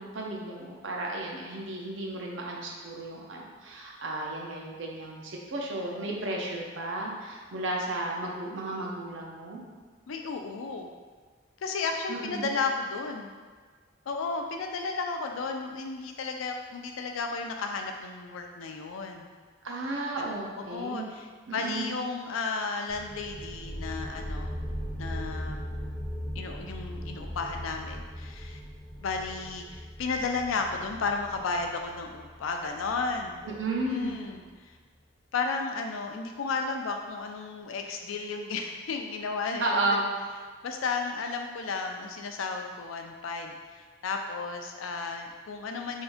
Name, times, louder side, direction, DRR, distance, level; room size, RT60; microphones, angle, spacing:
voice 1, 0.0-9.6 12.1-12.5 19.6-21.1 21.5-21.9 33.4-34.1 39.6-40.1, right 2 dB, 70° right, -1 dB, 0.6 m, -33 dB
voice 2, 10.1-10.9 11.6-13.3 14.1-19.3 20.6-21.3 21.5-24.5 25.0-25.6 26.4-28.6 29.0-33.4 33.9-34.7 35.3-40.0 40.6-46.0, left 4 dB, 85° left, 3 dB, 0.4 m, -33 dB
sound 1, 22.9-34.3, equal, 15° left, 0.5 m, -39 dB
3.6 x 2.6 x 3.5 m, 1.5 s
head